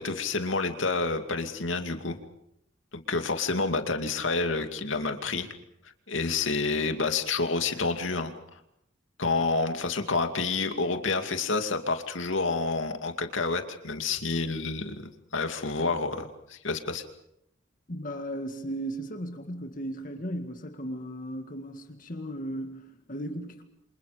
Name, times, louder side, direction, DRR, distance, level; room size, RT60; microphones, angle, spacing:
voice 1, 0.0-2.2 3.1-5.5 6.1-8.3 9.2-17.0, left 3 dB, 85° left, 6 dB, 2.5 m, -29 dB
voice 2, 17.9-23.6, right 1 dB, 45° left, 5 dB, 2.0 m, -36 dB
29.5 x 26.5 x 5.1 m, 0.76 s
head